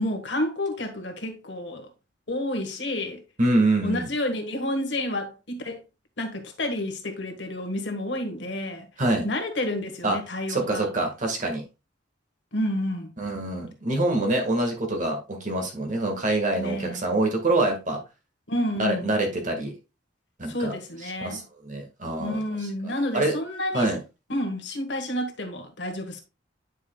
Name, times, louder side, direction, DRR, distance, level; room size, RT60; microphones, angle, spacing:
voice 1, 0.0-1.9 2.3-3.2 3.8-5.8 6.2-8.9 9.2-10.9 12.5-13.1 16.5-17.0 18.5-19.1 20.5-21.4 22.2-23.9 24.3-26.2, left 1 dB, 70° left, 1.6 m, -30 dB
voice 2, 3.4-4.1 9.0-9.3 10.0-10.2 10.5-11.6 13.2-18.0 18.8-19.7 20.4-20.7 21.2-23.3 23.7-24.0, right 2 dB, 45° right, 1.8 m, -25 dB
9.6 x 5.4 x 2.3 m
head